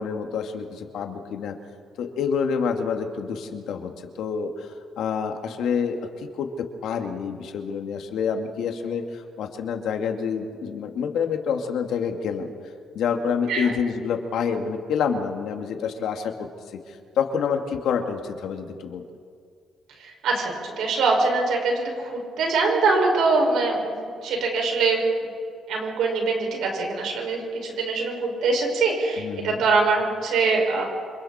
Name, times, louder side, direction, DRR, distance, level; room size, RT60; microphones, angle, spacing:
voice 1, 0.0-1.6 2.0-3.9 4.2-4.7 5.0-12.5 12.9-16.5 16.9-19.0 29.2-29.6, left 6 dB, 80° left, 4 dB, 2.2 m, -27 dB
voice 2, 20.2-23.9 24.2-25.0 25.7-30.8, right 3 dB, 80° right, 0 dB, 6.0 m, -23 dB
27.5 x 26.5 x 4.4 m, 2.2 s
cardioid pair, 90°, 0 cm